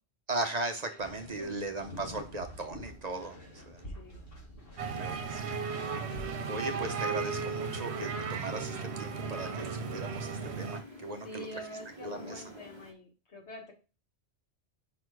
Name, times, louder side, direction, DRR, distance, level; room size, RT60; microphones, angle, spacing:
voice 1, 0.3-3.8 5.0-5.5 6.5-11.5 12.0-12.4, right 2 dB, 40° right, 6 dB, 0.8 m, -38 dB
sound 1, 1.0-6.3, left 1 dB, 60° left, 2.3 m, -47 dB
voice 2, 3.8-4.2 11.2-13.7, equal, 80° left, 1 dB, 1.9 m, -46 dB
sound 2, 4.8-10.8, right 5 dB, 75° right, 1.1 m, -35 dB
sound 3, 5.7-12.9, left 1 dB, 25° right, 1.2 m, -51 dB
5.5 x 4.1 x 4.7 m, 0.33 s
omnidirectional pair, 1.1 m